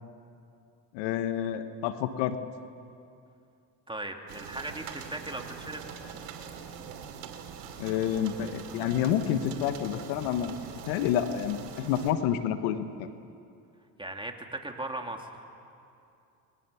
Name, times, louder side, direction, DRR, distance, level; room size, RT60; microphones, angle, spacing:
voice 1, 0.9-2.4 7.8-10.5 10.9-13.1, left 10 dB, 85° left, 9 dB, 1.5 m, -29 dB
voice 2, 3.9-5.8 14.0-15.3, right 2 dB, 10° right, 3 dB, 3.2 m, -38 dB
sound 1, 4.3-12.1, right 7 dB, 85° right, 3.0 m, -43 dB
29.5 x 22.5 x 7.1 m, 2.6 s
supercardioid pair, 75°, 48 cm